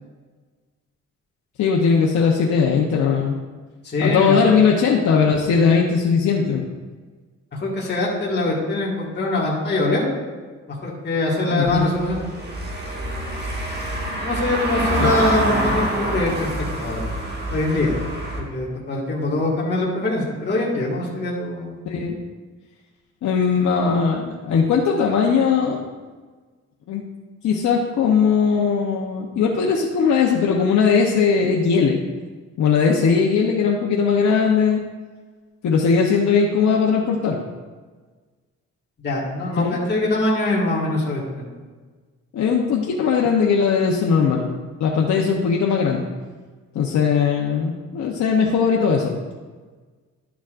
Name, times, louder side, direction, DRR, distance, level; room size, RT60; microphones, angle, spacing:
voice 1, 1.6-3.4 4.0-6.7 11.5-11.9 15.0-15.1 21.9-22.2 23.2-25.8 26.9-27.0 27.4-32.0 32.6-34.8 35.6-37.4 39.6-39.8 42.3-46.1 46.7-49.2, left 6 dB, 75° left, -1 dB, 0.9 m, -19 dB
voice 2, 3.8-4.5 7.5-10.0 10.8-12.2 14.2-17.0 17.5-17.9 18.4-21.8 39.0-41.5, left 2 dB, 35° left, -5 dB, 1.9 m, -23 dB
Car passing by / Engine, 11.6-18.4, right 1 dB, 35° right, 1.7 m, -26 dB
11.5 x 7.1 x 2.5 m, 1.4 s
cardioid pair, 115°, 29 cm